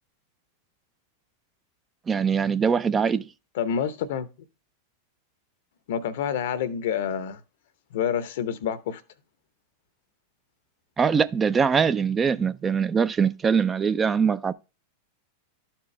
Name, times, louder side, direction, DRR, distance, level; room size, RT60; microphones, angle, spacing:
voice 1, 2.1-3.3 11.0-14.5, right 6 dB, 20° right, 0.4 m, -22 dB
voice 2, 3.5-4.3 5.9-7.4 7.9-9.0, left 8 dB, 65° left, 0.8 m, -28 dB
12.0 x 4.5 x 3.2 m
hypercardioid pair, 100°, 0 cm